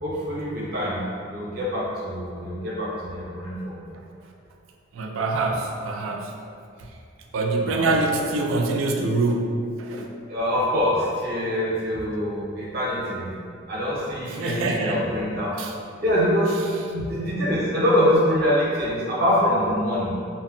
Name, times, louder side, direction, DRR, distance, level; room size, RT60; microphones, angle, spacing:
voice 1, 0.0-3.8 7.6-8.2 10.3-13.3 13.7-15.5 16.0-20.1, equal, 50° right, -6 dB, 0.7 m, -24 dB
voice 2, 4.9-6.3 7.3-10.1 14.3-15.0 15.5-15.7, right 2 dB, 80° right, 2 dB, 0.3 m, -25 dB
2.1 x 2.0 x 3.7 m, 2.4 s
head